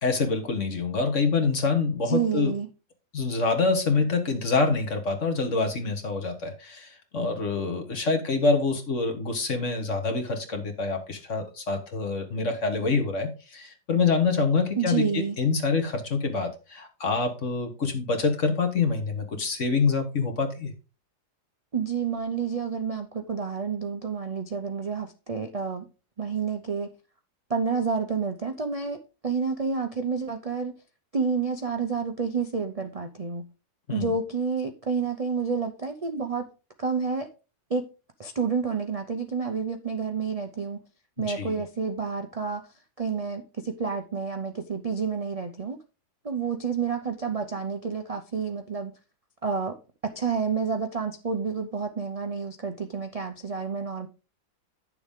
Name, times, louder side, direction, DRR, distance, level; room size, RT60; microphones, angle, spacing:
voice 1, 0.0-2.5 3.1-20.7 33.9-34.1 41.2-41.6, left 4 dB, 45° left, 1.7 m, -26 dB
voice 2, 2.1-2.7 14.8-15.4 21.7-25.9 26.2-26.9 27.5-30.7 31.1-33.4 33.9-36.5 36.8-37.3 37.7-37.9 38.2-40.8 41.2-42.6 43.0-45.8 46.2-48.9 49.4-49.8 50.0-54.1, right 5 dB, 50° right, 0.4 m, -29 dB
10.5 x 6.9 x 3.6 m
omnidirectional pair, 1.8 m